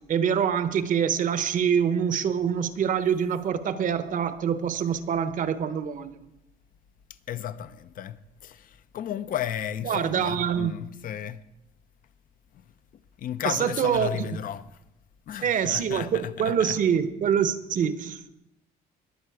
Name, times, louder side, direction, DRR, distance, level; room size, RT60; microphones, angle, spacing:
voice 1, 0.1-6.1 9.9-10.7 13.4-14.4 15.4-18.3, right 8 dB, 50° right, 1.0 m, -25 dB
voice 2, 7.3-11.4 13.2-14.6 15.3-16.8, left 10 dB, 55° left, 0.7 m, -34 dB
21.0 x 7.5 x 4.8 m
cardioid pair, 110°, 17 cm